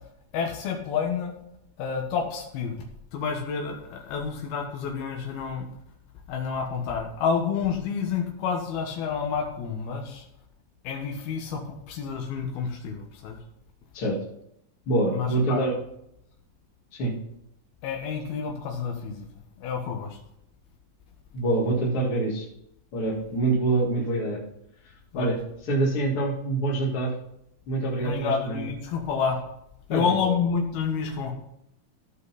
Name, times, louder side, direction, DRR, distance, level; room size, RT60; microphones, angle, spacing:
voice 1, 0.3-1.3 1.8-2.8 3.1-5.7 6.3-10.3 10.8-13.4 15.1-15.6 17.8-19.3 19.6-20.2 25.1-25.3 28.0-29.4 29.9-31.3, left 6 dB, 85° left, 1 dB, 3.2 m, -29 dB
voice 2, 14.9-15.7 17.0-17.1 21.3-22.5 22.9-24.4 25.1-25.4 25.7-27.1 27.7-28.6 29.9-30.3, right 2 dB, 45° left, -6 dB, 2.4 m, -25 dB
15.0 x 5.7 x 4.1 m, 0.76 s
omnidirectional pair, 4.3 m